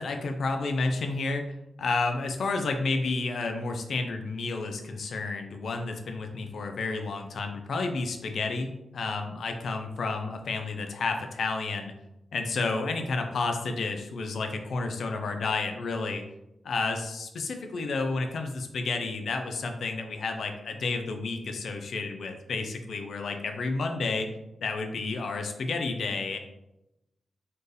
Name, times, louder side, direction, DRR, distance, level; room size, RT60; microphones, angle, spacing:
voice 1, 0.0-1.5 1.8-11.9 12.3-16.2 16.6-24.3 24.6-26.4, left 3 dB, 75° left, 5 dB, 0.5 m, -31 dB
4.3 x 2.7 x 3.3 m, 0.88 s
cardioid pair, 85°, 0 cm